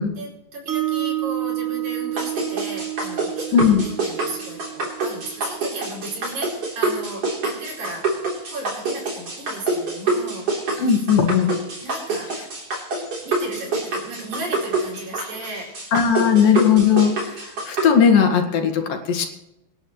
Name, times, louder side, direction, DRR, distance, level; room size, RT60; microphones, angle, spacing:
voice 1, 0.1-8.1 8.5-11.1 11.8-12.4 13.2-15.8 16.1-16.3, right 2 dB, 65° right, -2 dB, 6.2 m, -35 dB
Mallet percussion, 0.7-6.8, right 14 dB, 85° right, 1.1 m, -30 dB
sound 1, 2.2-17.9, right 3 dB, 40° right, 4.4 m, -26 dB
voice 2, 3.5-3.8 10.8-11.5 15.9-19.3, left 7 dB, 70° left, 4 dB, 3.4 m, -17 dB
25.5 x 11.0 x 3.2 m, 0.88 s
omnidirectional pair, 4.2 m